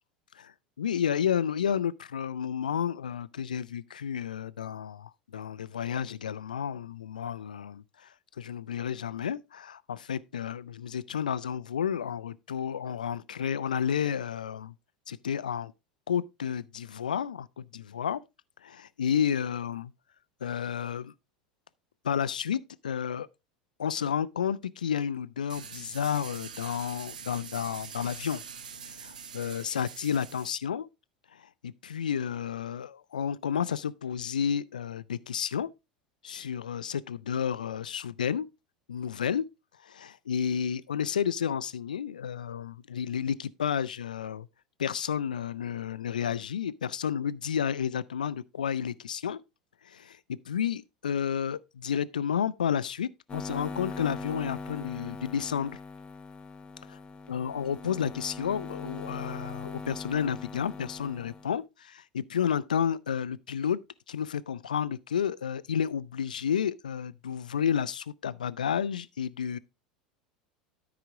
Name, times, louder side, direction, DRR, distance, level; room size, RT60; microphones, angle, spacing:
voice 1, 0.3-14.7 15.1-15.7 16.1-18.2 18.6-19.9 20.4-21.1 22.0-23.3 23.8-28.4 28.9-30.9 31.3-35.7 36.2-38.5 38.9-39.5 39.8-44.5 44.8-49.4 49.8-55.8 56.9-57.0 57.3-63.8 64.1-69.6, left 8 dB, 80° left, 0.4 m, -31 dB
sound 1, 25.5-30.5, right 6 dB, 80° right, 1.0 m, -44 dB
sound 2, 53.3-61.6, left 4 dB, 25° left, 1.0 m, -41 dB
13.0 x 5.0 x 3.6 m
hypercardioid pair, 80°, 4 cm